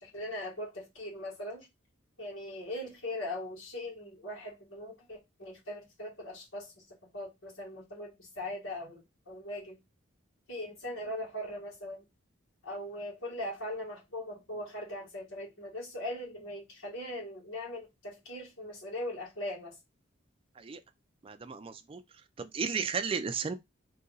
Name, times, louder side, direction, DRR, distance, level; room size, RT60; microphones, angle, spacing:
voice 1, 0.0-1.7 2.2-6.7 7.1-9.8 10.5-12.0 12.6-19.7, left 1 dB, 75° left, 1.6 m, -40 dB
voice 2, 21.2-22.0 22.4-23.5, right 5 dB, 25° right, 0.3 m, -34 dB
2.8 x 2.5 x 3.8 m
head